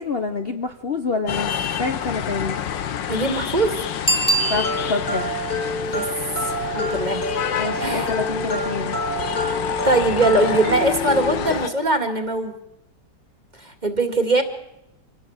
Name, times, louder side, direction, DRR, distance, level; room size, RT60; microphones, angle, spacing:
voice 1, 0.0-1.5 1.8-2.6 4.5-5.3 7.6-9.0, left 4 dB, 40° left, 6 dB, 1.1 m, -26 dB
sound 1, 1.3-11.7, left 9 dB, 80° left, 1.8 m, -28 dB
voice 2, 3.1-3.7 5.8-6.1 6.4-7.2 7.8-8.1 9.8-12.5 13.6-14.4, right 2 dB, 25° right, 6 dB, 2.2 m, -21 dB
Bicycle bell, 4.0-5.2 10.7-10.8, right 2 dB, 5° left, 2.0 m, -23 dB
sound 2, 4.5-11.6, equal, 55° left, 4.8 m, -28 dB
26.5 x 17.0 x 7.3 m, 0.86 s
omnidirectional pair, 2.0 m